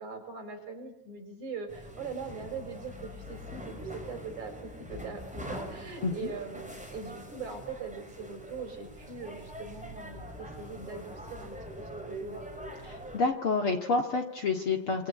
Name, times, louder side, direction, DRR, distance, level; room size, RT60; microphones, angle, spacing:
voice 1, 0.0-12.5, right 4 dB, 55° right, 5 dB, 6.8 m, -41 dB
sound 1, 1.7-13.2, equal, ahead, 4.6 m, -43 dB
voice 2, 12.8-15.1, left 3 dB, 45° left, 4 dB, 2.5 m, -29 dB
26.5 x 26.0 x 8.4 m, 0.81 s
omnidirectional pair, 4.0 m